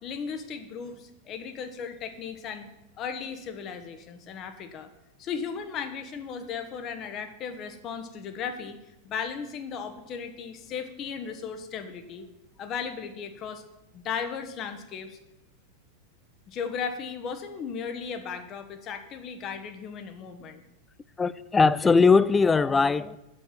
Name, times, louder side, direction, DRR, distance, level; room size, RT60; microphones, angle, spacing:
voice 1, 0.0-2.7 3.0-4.9 5.2-8.8 9.0-12.3 12.6-13.6 13.9-15.2 16.5-20.6, left 6 dB, 35° left, 7 dB, 1.2 m, -36 dB
voice 2, 21.2-23.2, left 4 dB, 15° left, 18 dB, 0.4 m, -20 dB
8.9 x 7.1 x 7.7 m, 0.93 s
figure-of-eight pair, 90°, 0 cm